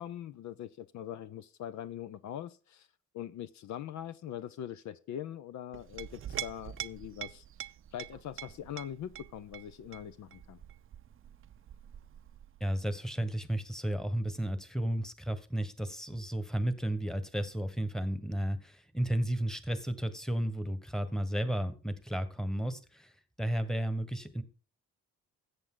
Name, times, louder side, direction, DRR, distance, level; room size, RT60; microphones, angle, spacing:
voice 1, 0.0-2.9 3.1-7.4 7.9-10.6, left 10 dB, 70° left, 13 dB, 0.7 m, -42 dB
Chink clink, 5.7-12.8, right 11 dB, 45° right, 0.5 m, -45 dB
voice 2, 12.6-23.1 23.4-24.4, right 1 dB, ahead, 11 dB, 1.3 m, -33 dB
13.5 x 8.1 x 3.8 m, 0.35 s
cardioid pair, 90°, 30 cm